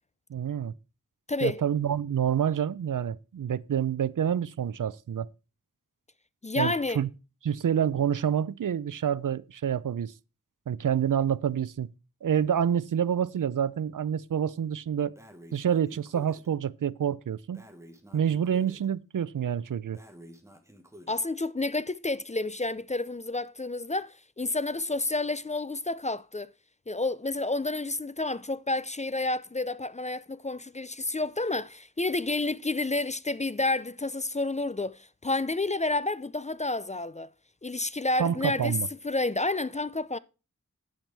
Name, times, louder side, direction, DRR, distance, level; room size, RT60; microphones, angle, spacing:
voice 1, 0.3-0.7 1.4-5.3 6.6-7.1 7.4-10.1 10.7-11.9 12.2-15.1 15.5-17.6 18.1-20.0 38.2-38.9, right 8 dB, 75° right, 0.5 m, -27 dB
voice 2, 1.3-1.6 6.4-7.0 21.1-26.5 26.9-37.3 37.6-38.8 39.0-40.2, left 2 dB, 20° left, 0.4 m, -30 dB
Breathing, 15.1-16.5 17.5-18.9 19.9-21.3, equal, 10° right, 1.3 m, -51 dB
8.8 x 8.8 x 3.4 m
wide cardioid pair, 45°, 32 cm